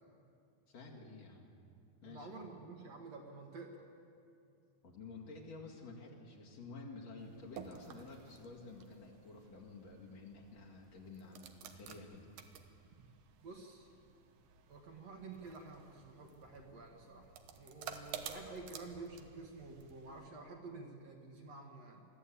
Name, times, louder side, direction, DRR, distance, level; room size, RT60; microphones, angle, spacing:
voice 1, 0.7-1.5 2.0-2.4 4.8-12.3 17.8-18.1, left 3 dB, 50° left, -2 dB, 3.2 m, -51 dB
voice 2, 2.0-3.9 12.9-13.0 13.4-13.9 14.7-22.1, right 3 dB, 55° right, 1 dB, 2.6 m, -50 dB
sound 1, 7.2-20.3, right 8 dB, 80° right, 2.8 m, -53 dB
23.0 x 14.5 x 8.6 m, 2.5 s
omnidirectional pair, 3.9 m